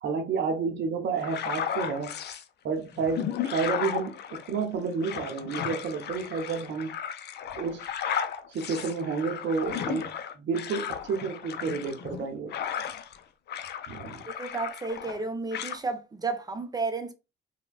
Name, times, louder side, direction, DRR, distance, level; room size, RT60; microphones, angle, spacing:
voice 1, 0.0-2.1 2.6-7.0 7.6-7.9 8.5-12.5 13.9-14.2, right 5 dB, 65° right, 0.6 m, -30 dB
sound 1, 1.2-2.4 2.9-13.2 13.5-15.2 15.5-15.8, left 8 dB, 55° left, 0.4 m, -35 dB
voice 2, 14.4-17.1, right 3 dB, 20° right, 0.5 m, -32 dB
3.2 x 2.1 x 2.3 m
cardioid pair, 90°, 20 cm